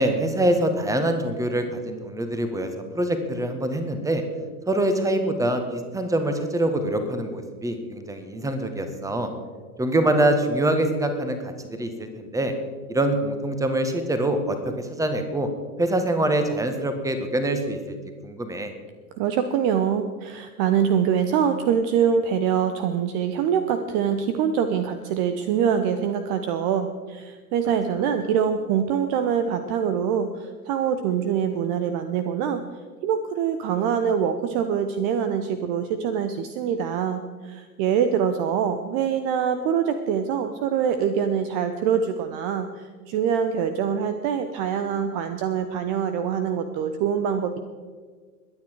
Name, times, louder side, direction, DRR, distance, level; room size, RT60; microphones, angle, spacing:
voice 1, 0.0-4.2 4.7-9.3 9.8-12.5 12.9-15.5 15.8-17.9 18.2-18.7 27.6-27.8, right 1 dB, 5° right, 7 dB, 1.6 m, -24 dB
voice 2, 19.2-32.6 33.0-47.6, right 8 dB, 35° right, 9 dB, 0.9 m, -24 dB
22.0 x 9.4 x 4.7 m, 1.5 s
figure-of-eight pair, 90°, 45 cm